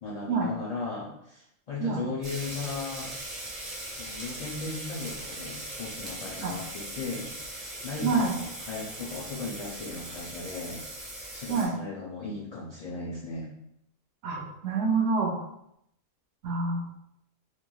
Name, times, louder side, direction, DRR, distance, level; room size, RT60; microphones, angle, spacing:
voice 1, 0.0-3.1 4.0-7.3 7.8-10.8 11.3-13.5, left 3 dB, 75° left, -6 dB, 0.3 m, -36 dB
sound 1, 2.2-11.7, right 1 dB, 35° right, 0.8 m, -40 dB
voice 2, 8.0-8.3 11.5-11.7 14.2-15.4 16.4-16.8, right 4 dB, 65° right, 0 dB, 0.8 m, -27 dB
3.0 x 2.4 x 2.2 m, 0.78 s
omnidirectional pair, 1.3 m